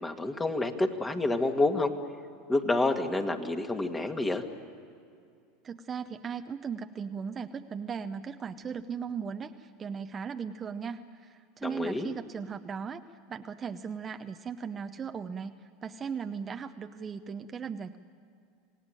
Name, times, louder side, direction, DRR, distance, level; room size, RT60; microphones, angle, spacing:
voice 1, 0.0-1.9 2.5-4.4 11.6-12.1, left 2 dB, 15° left, 5 dB, 2.0 m, -28 dB
voice 2, 5.6-13.0 13.3-15.5 15.8-18.0, right 6 dB, 30° right, 7 dB, 0.8 m, -37 dB
27.0 x 18.0 x 9.1 m, 2.4 s
hypercardioid pair, 100°, 0 cm